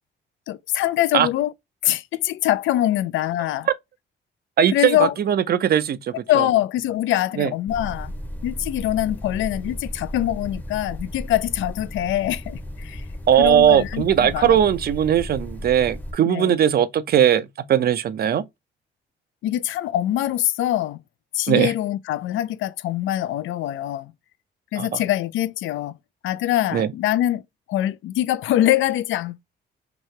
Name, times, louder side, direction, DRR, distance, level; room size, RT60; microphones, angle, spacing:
voice 1, 0.5-1.5 1.8-3.7 4.7-5.1 6.3-8.1 8.4-13.0 13.4-14.6 16.2-16.6 19.4-21.0 21.3-24.1 24.7-26.0 26.2-27.4 27.7-29.4, left 13 dB, 75° left, 0.4 m, -23 dB
voice 2, 4.6-6.5 7.4-7.5 13.3-18.4 21.5-21.7 24.8-25.0 26.7-26.9, right 9 dB, 50° right, 0.5 m, -19 dB
sound 1, 7.7-16.1, equal, 10° left, 0.7 m, -35 dB
3.0 x 2.7 x 3.2 m
cardioid pair, 90°, 20 cm